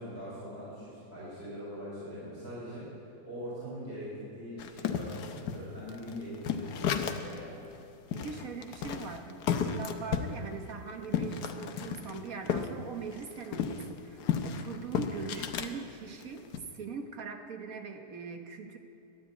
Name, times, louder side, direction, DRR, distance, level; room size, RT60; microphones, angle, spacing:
voice 1, 0.0-7.6, equal, 35° right, -8 dB, 4.6 m, -42 dB
sound 1, 4.6-7.4 7.7-7.8 8.1-12.7 13.0-15.7 16.2-16.6, left 7 dB, 75° left, 1.4 m, -33 dB
voice 2, 8.1-16.4 16.7-18.8, right 5 dB, 60° right, 5 dB, 1.5 m, -41 dB
12.5 x 9.6 x 9.6 m, 2.6 s
omnidirectional pair, 1.8 m